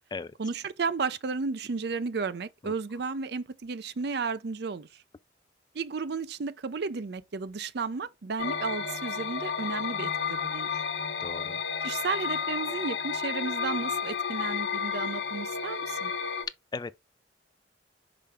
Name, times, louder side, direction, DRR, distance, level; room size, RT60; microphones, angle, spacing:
voice 1, 0.4-4.9 5.7-10.7 11.8-16.1, right 4 dB, 60° right, 0.5 m, -33 dB
sound 1, 8.4-16.5, left 6 dB, 80° left, 1.1 m, -32 dB
voice 2, 11.2-11.6 16.7-17.0, left 4 dB, 25° left, 0.3 m, -37 dB
5.6 x 5.0 x 3.5 m
head